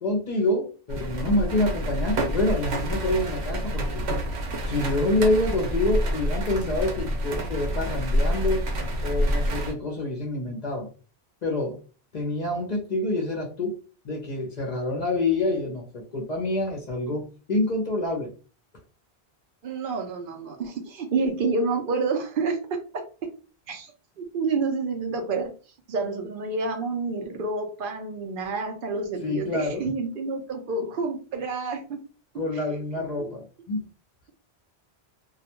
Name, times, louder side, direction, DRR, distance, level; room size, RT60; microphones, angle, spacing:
voice 1, 0.0-4.0 4.6-8.6 9.0-10.9 11.4-11.8 12.1-13.7 14.0-17.2 17.5-18.3 29.2-29.9 32.4-33.8, left 2 dB, 50° left, 0 dB, 0.6 m, -27 dB
sound 1, 0.9-9.7, equal, 85° right, 1.0 m, -27 dB
voice 2, 19.6-23.0 23.7-25.5 25.9-32.0 32.5-32.8 33.1-33.3, right 4 dB, 60° right, 5 dB, 0.7 m, -29 dB
2.3 x 2.1 x 2.8 m, 0.36 s
omnidirectional pair, 1.1 m